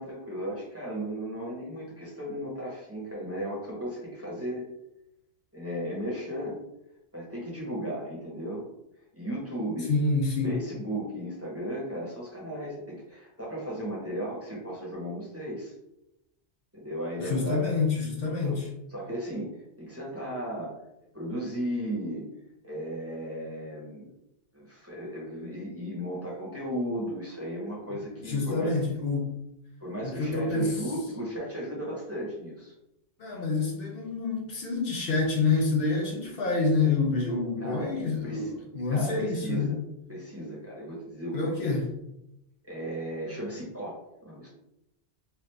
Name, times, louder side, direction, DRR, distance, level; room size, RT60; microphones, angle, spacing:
voice 1, 0.0-4.6 5.5-6.6 7.1-8.6 9.1-9.9 10.4-15.7 16.7-17.7 18.4-18.6 18.9-20.8 21.1-22.3 22.6-24.1 24.5-28.8 29.8-32.7 37.6-38.5 38.9-39.8 40.1-41.7 42.6-44.5, equal, 15° right, -5 dB, 0.9 m, -35 dB
voice 2, 9.9-10.5 17.2-18.7 28.2-29.4 30.0-30.8 33.2-39.7 41.3-41.9, left 3 dB, 65° left, -1 dB, 0.8 m, -27 dB
3.2 x 2.4 x 3.2 m, 0.85 s
omnidirectional pair, 1.1 m